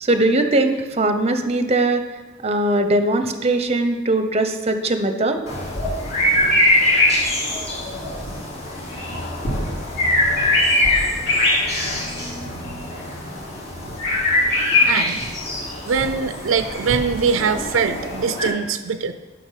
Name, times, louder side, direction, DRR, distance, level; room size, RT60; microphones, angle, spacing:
voice 1, 0.0-2.0 2.4-5.4, right 2 dB, 30° right, 8 dB, 0.7 m, -20 dB
sound 1, 5.5-18.5, left 1 dB, 50° left, 3.3 m, -22 dB
voice 2, 14.8-15.2 15.9-19.1, right 6 dB, 75° right, 11 dB, 0.4 m, -22 dB
9.9 x 5.7 x 5.7 m, 1.2 s
head